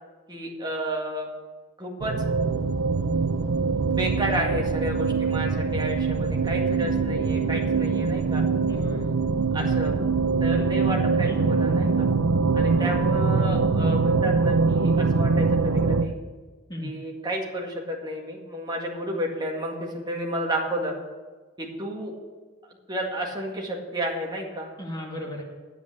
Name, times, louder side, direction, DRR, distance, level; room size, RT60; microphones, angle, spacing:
voice 1, 0.3-1.3 1.8-2.1 3.9-8.4 9.5-10.0 10.4-12.1 12.5-16.1 16.8-20.9 21.6-22.1 22.9-24.7, equal, 20° right, -1 dB, 1.9 m, -31 dB
sound 1, 2.0-16.0, right 4 dB, 90° right, 0.6 m, -23 dB
voice 2, 8.7-9.1 10.5-10.7 11.3-11.4 12.7-12.9 16.7-16.9 24.8-25.4, left 1 dB, 20° left, -1 dB, 2.1 m, -35 dB
9.5 x 8.2 x 8.5 m, 1.4 s
head